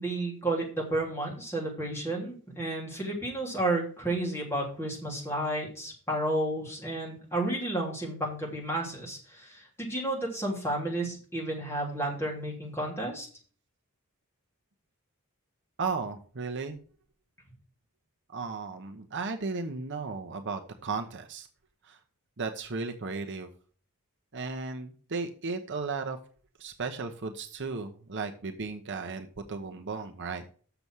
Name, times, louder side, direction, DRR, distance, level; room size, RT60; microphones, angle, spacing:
voice 1, 0.0-13.3, right 1 dB, 10° left, -3 dB, 3.4 m, -32 dB
voice 2, 15.8-16.8 18.3-21.5 21.8-22.0 22.4-23.5 24.3-26.2 26.6-30.4, right 4 dB, 55° right, 6 dB, 0.9 m, -35 dB
7.0 x 6.9 x 6.1 m, 0.43 s
head